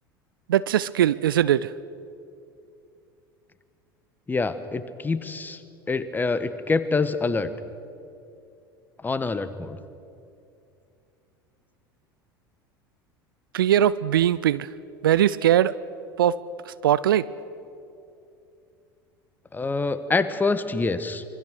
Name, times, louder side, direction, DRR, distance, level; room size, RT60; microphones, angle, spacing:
voice 1, 0.5-1.7 13.5-14.7 15.0-15.7 16.2-16.4 16.7-17.3, right 11 dB, 70° right, 18 dB, 0.6 m, -20 dB
voice 2, 4.3-5.6 5.9-7.5 9.0-9.8 19.5-21.2, left 3 dB, 15° left, 12 dB, 1.4 m, -26 dB
26.0 x 24.0 x 6.4 m, 2.6 s
figure-of-eight pair, 75°, 12 cm